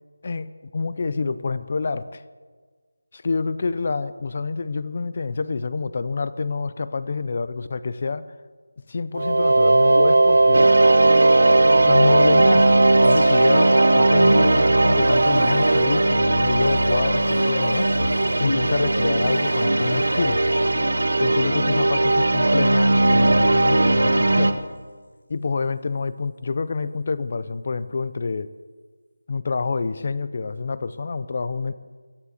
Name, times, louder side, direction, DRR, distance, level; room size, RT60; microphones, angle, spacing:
voice 1, 0.2-2.2 3.1-8.3 8.9-10.7 11.8-17.9 18.4-20.4 21.2-24.5 25.3-28.5 29.3-31.7, left 4 dB, 30° left, 15 dB, 0.4 m, -27 dB
sound 1, 9.1-15.8, right 2 dB, 50° right, 0.5 m, -17 dB
sound 2, 10.5-24.5, right 2 dB, 70° right, 1.3 m, -20 dB
sound 3, 13.0-23.2, left 1 dB, 85° left, 4.5 m, -32 dB
14.5 x 10.0 x 8.2 m, 1.5 s
figure-of-eight pair, 180°, 0 cm